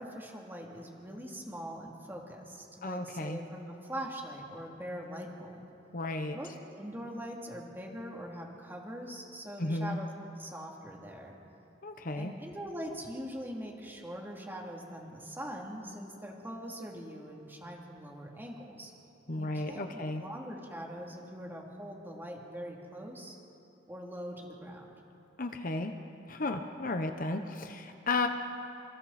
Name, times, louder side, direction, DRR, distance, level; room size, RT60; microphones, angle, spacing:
voice 1, 0.0-5.6 6.3-10.1 10.4-11.4 12.1-18.9 19.4-23.4 23.9-25.0, equal, 10° right, -1 dB, 3.1 m, -42 dB
voice 2, 2.8-3.4 5.9-6.4 9.6-10.0 11.8-12.3 19.3-20.2 25.4-25.9 26.3-28.3, left 2 dB, 50° left, 6 dB, 1.0 m, -33 dB
29.0 x 27.5 x 4.3 m, 2.8 s
head